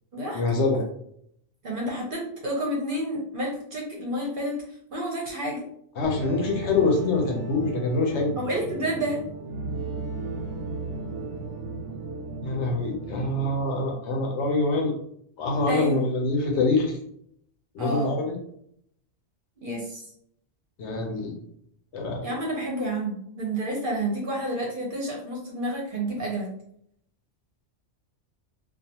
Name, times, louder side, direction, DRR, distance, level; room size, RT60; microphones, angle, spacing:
voice 1, 0.3-0.8 6.0-8.4 12.4-14.9 15.4-16.9 17.7-18.4 20.8-21.3 21.9-22.3, left 3 dB, 70° left, 1 dB, 0.9 m, -25 dB
voice 2, 1.6-4.6 4.9-5.6 8.4-9.2 15.7-16.1 17.8-18.1 19.6-20.0 22.2-26.5, right 1 dB, 50° right, -2 dB, 0.7 m, -30 dB
sound 1, 6.0-13.6, right 2 dB, 90° right, 1.0 m, -35 dB
2.4 x 2.3 x 2.8 m, 0.69 s
omnidirectional pair, 1.3 m